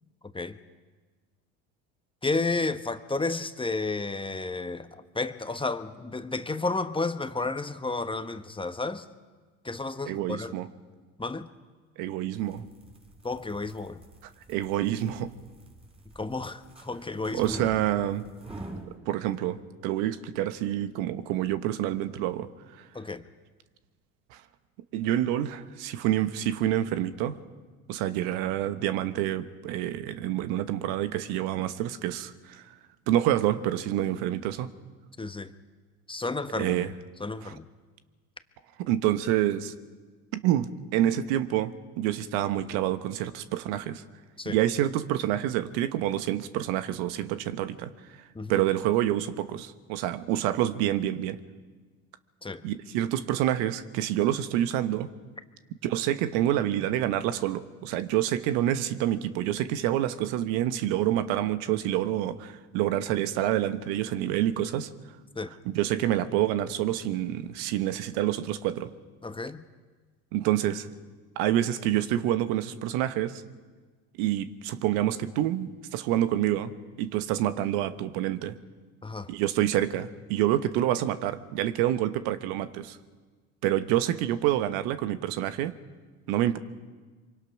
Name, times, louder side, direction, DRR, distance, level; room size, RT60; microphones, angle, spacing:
voice 1, 2.2-9.0 9.6-10.5 11.2-11.5 13.2-14.0 16.1-17.7 22.9-23.2 35.2-35.5 36.1-36.9 37.2-37.7 44.4-44.6 48.3-48.6 52.4-52.6 65.3-65.5 69.2-69.6 79.0-79.3, left 3 dB, 15° left, 10 dB, 1.1 m, -32 dB
voice 2, 10.1-10.7 12.0-12.7 14.2-15.3 17.3-18.3 19.1-22.8 24.3-24.4 24.9-27.4 27.9-32.7 33.1-34.7 36.6-36.9 37.4-37.5 38.8-39.7 40.3-44.0 44.4-47.9 48.5-51.4 52.6-55.1 55.8-64.9 65.6-68.9 70.3-70.9 71.4-73.4 74.2-76.7 77.0-78.6 79.3-83.0 83.6-85.7 86.3-86.6, right 12 dB, 70° right, 12 dB, 1.2 m, -27 dB
sound 1, 12.2-19.0, right 2 dB, 15° right, 5.6 m, -46 dB
25.0 x 24.0 x 5.9 m, 1.4 s
hypercardioid pair, 80°, 38 cm